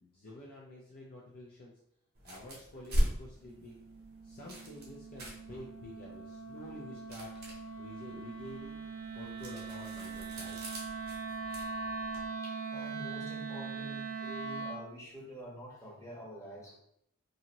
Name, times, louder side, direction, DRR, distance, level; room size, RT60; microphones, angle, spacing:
voice 1, 0.0-1.7 2.2-3.8 4.2-7.3 7.8-8.8 9.1-10.6, left 1 dB, 40° left, -3 dB, 0.4 m, -49 dB
sound 1, 2.1-12.3, equal, 45° right, 0.8 m, -40 dB
Wind instrument woodwind instrument, 3.4-14.9, right 4 dB, 65° right, 0.4 m, -41 dB
voice 2, 12.4-16.7, equal, 15° left, -5 dB, 0.8 m, -47 dB
2.6 x 2.6 x 2.8 m, 0.73 s
head